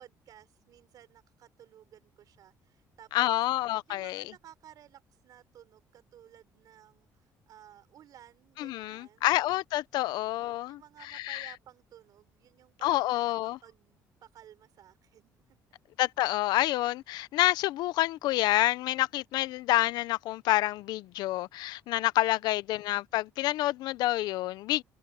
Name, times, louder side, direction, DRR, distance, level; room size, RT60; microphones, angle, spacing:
voice 1, 0.0-3.3 3.9-9.4 10.6-15.6 22.4-22.5, right 11 dB, 65° right, 4.2 m, -56 dB
voice 2, 3.1-4.2 8.6-11.5 12.8-13.6 16.0-24.8, left 16 dB, 80° left, 0.7 m, -28 dB
cardioid pair, 110°, 7 cm